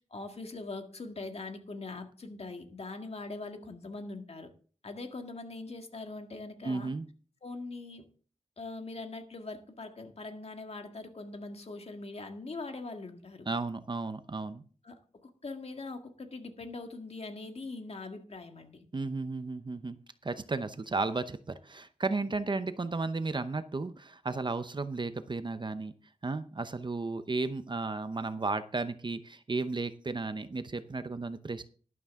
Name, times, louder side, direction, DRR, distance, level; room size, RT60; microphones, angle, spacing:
voice 1, 0.1-4.5 4.8-6.9 7.4-8.0 8.6-13.5 14.8-18.8, left 3 dB, 55° left, 5 dB, 1.8 m, -42 dB
voice 2, 6.6-7.1 13.5-14.6 18.9-20.0 20.2-25.9 26.2-31.7, right 3 dB, 40° right, 11 dB, 0.7 m, -34 dB
12.0 x 12.0 x 3.6 m, 0.42 s
wide cardioid pair, 95°, 13 cm